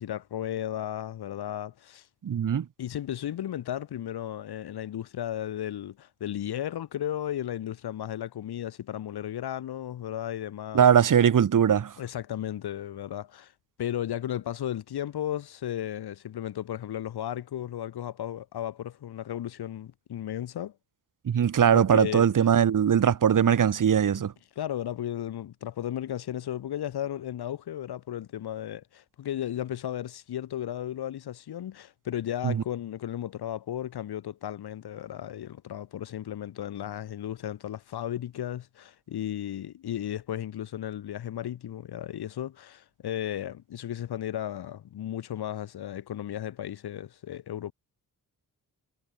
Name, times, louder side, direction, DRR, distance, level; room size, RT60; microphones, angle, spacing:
voice 1, 0.0-2.1 2.8-10.9 12.0-13.5 13.8-20.7 21.7-22.2 24.1-24.2 24.5-47.7, left 11 dB, 90° left, 4.8 m, -34 dB
voice 2, 2.2-2.7 10.7-11.9 21.3-24.3 32.4-32.6, right 8 dB, 55° right, 1.8 m, -21 dB
cardioid pair, 95°, 37 cm